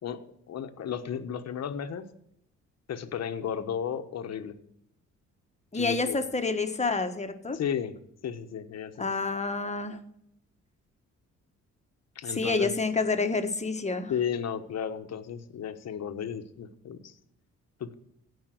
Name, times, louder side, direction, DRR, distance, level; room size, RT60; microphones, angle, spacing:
voice 1, 0.0-2.1 2.9-4.5 5.7-6.2 7.5-8.0 8.2-9.1 12.1-12.7 14.1-17.1 17.8-17.9, left 8 dB, 60° left, 8 dB, 1.3 m, -34 dB
voice 2, 5.7-7.6 9.0-10.0 12.3-14.1, left 3 dB, 20° left, 7 dB, 1.5 m, -28 dB
16.5 x 5.6 x 7.7 m, 0.72 s
cardioid pair, 90°, 30 cm